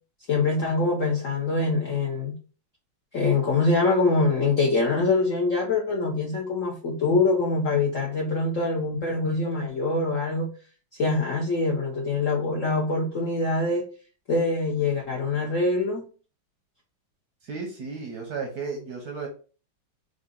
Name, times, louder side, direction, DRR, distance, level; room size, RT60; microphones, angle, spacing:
voice 1, 0.3-2.4 3.1-10.5 11.0-13.8 14.3-16.0, left 3 dB, 65° left, -2 dB, 0.7 m, -24 dB
voice 2, 17.4-19.3, right 4 dB, 65° right, 2 dB, 1.0 m, -34 dB
3.8 x 2.5 x 3.6 m, 0.38 s
omnidirectional pair, 2.3 m